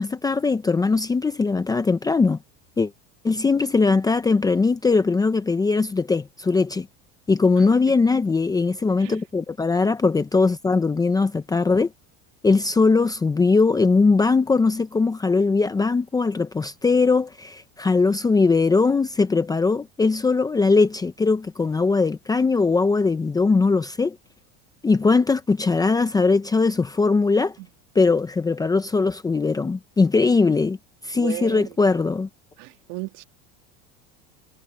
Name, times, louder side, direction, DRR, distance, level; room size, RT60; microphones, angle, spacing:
voice 1, 0.0-2.4 2.8-2.9 3.2-6.9 7.3-11.9 12.4-24.2 24.8-27.5 28.0-30.8 31.0-32.3, left 4 dB, 10° left, 0.7 m, -20 dB
voice 2, 7.6-7.9 9.0-9.2 27.6-27.7 31.2-31.8 32.6-33.2, right 22 dB, 60° right, 2.0 m, -35 dB
supercardioid pair, 145°, 36 cm